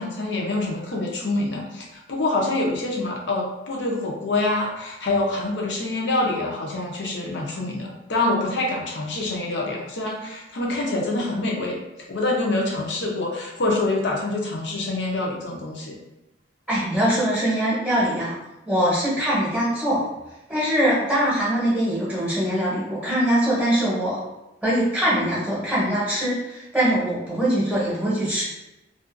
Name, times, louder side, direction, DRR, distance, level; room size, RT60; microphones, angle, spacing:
voice 1, 0.0-11.8 12.1-16.0, left 2 dB, 70° left, -1 dB, 0.6 m, -26 dB
voice 2, 16.7-18.3 18.7-20.0 20.5-24.2 24.6-28.4, right 1 dB, ahead, -10 dB, 0.9 m, -22 dB
2.5 x 2.3 x 2.5 m, 0.96 s
head